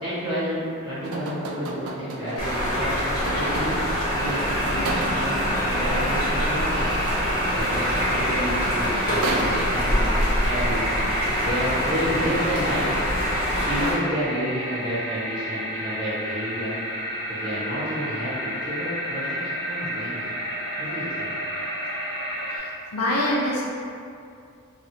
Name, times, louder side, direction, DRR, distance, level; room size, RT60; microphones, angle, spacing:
voice 1, 0.0-3.0 3.3-6.9 7.5-10.9 11.4-12.9 13.5-16.7 17.3-19.4 19.6-20.3 20.8-21.3, equal, 20° right, -13 dB, 1.1 m, -30 dB
sound 1, 1.0-4.0 4.8-5.5 8.1-8.2 8.5-10.1, right 2 dB, 80° right, 0.3 m, -33 dB
sound 2, 2.4-13.9, equal, 70° left, 1.0 m, -24 dB
sound 3, 4.0-22.6, equal, ahead, 1.1 m, -32 dB
voice 2, 22.5-23.6, left 1 dB, 90° left, -3 dB, 0.5 m, -25 dB
3.1 x 2.3 x 2.8 m, 2.4 s
head